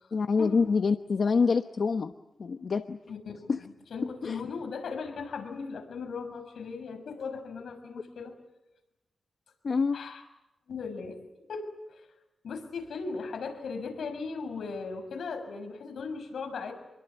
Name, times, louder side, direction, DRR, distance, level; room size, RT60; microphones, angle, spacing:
voice 1, 0.1-2.1 2.4-3.0 3.5-3.6 4.2-4.4 9.6-10.0, left 5 dB, 55° left, 8 dB, 1.0 m, -26 dB
voice 2, 3.1-8.3 9.9-10.2 10.7-11.2 11.5-12.1 12.4-16.7, left 4 dB, 80° left, 5 dB, 6.4 m, -38 dB
27.5 x 23.0 x 8.2 m, 0.97 s
wide cardioid pair, 115°, 0 cm